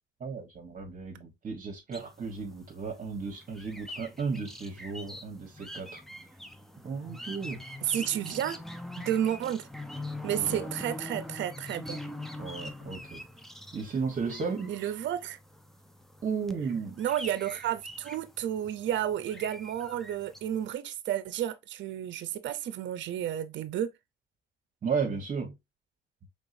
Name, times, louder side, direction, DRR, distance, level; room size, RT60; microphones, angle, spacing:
voice 1, 0.2-6.0 6.8-7.6 7.9-8.1 10.3-10.7 12.4-13.2 13.7-14.9 16.2-17.0 24.8-25.6, right 5 dB, 40° right, 1.1 m, -34 dB
sound 1, 1.9-20.7, left 1 dB, ahead, 0.6 m, -44 dB
voice 2, 7.8-8.6 9.1-9.7 10.2-12.0 14.7-15.4 17.0-23.9, right 10 dB, 70° right, 0.6 m, -31 dB
4.6 x 3.5 x 2.5 m
cardioid pair, 90°, 20 cm